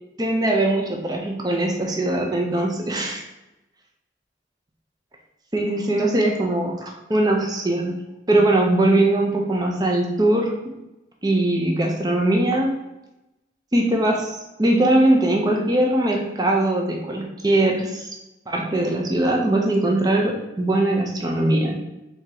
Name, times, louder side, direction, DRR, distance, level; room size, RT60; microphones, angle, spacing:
voice 1, 0.2-3.2 5.5-8.0 8.3-10.5 11.2-12.8 13.7-18.1 18.5-21.8, right 1 dB, 20° right, 1 dB, 0.6 m, -21 dB
3.6 x 2.8 x 4.6 m, 0.96 s
head